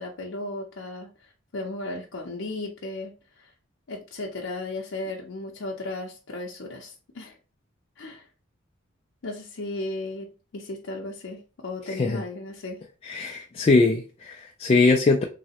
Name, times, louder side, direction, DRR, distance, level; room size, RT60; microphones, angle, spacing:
voice 1, 0.0-3.1 3.4-3.5 3.9-7.4 8.0-8.3 9.2-10.3 10.5-12.8, left 2 dB, 70° left, 0.6 m, -35 dB
voice 2, 13.0-15.2, left 3 dB, 30° left, 0.3 m, -21 dB
3.1 x 2.9 x 2.8 m
head